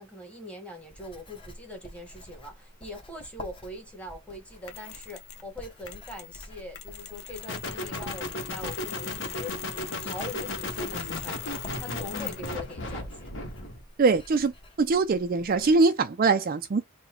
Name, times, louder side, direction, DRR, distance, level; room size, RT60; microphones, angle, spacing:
voice 1, 0.0-9.7 9.9-13.3, left 1 dB, 5° left, 1.2 m, -42 dB
Writing, 0.8-15.8, left 1 dB, 25° left, 1.0 m, -49 dB
Mechanisms, 4.7-5.5 5.9-12.7, left 11 dB, 75° left, 0.7 m, -41 dB
sound 1, 7.5-13.8, left 1 dB, 60° left, 1.2 m, -35 dB
voice 2, 14.0-14.5 14.8-16.8, right 4 dB, 40° right, 0.4 m, -22 dB
4.0 x 2.2 x 4.3 m
head